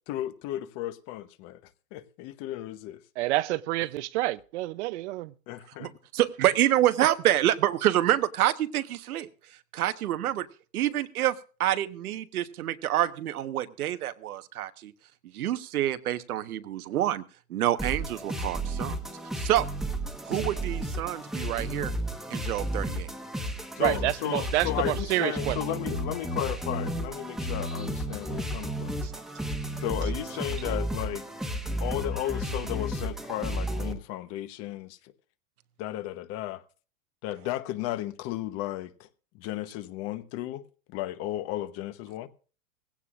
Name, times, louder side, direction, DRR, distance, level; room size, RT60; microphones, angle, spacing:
voice 1, 0.1-1.6 1.9-3.0 5.5-5.9 23.8-28.9 29.8-31.3 31.8-35.1 35.8-36.6 37.2-39.1 39.3-42.3, left 13 dB, 35° left, 1.0 m, -34 dB
voice 2, 3.2-5.3 23.8-25.6, right 17 dB, 55° right, 0.7 m, -28 dB
voice 3, 5.8-9.3 9.7-10.5 10.7-11.3 11.6-14.9 15.3-17.2 17.5-19.0 19.4-19.7 20.3-21.9 22.3-23.1 29.0-29.2, right 13 dB, 85° right, 1.3 m, -27 dB
sound 1, 17.8-33.9, right 1 dB, ahead, 1.2 m, -33 dB
18.5 x 16.5 x 2.5 m
supercardioid pair, 145°, 43 cm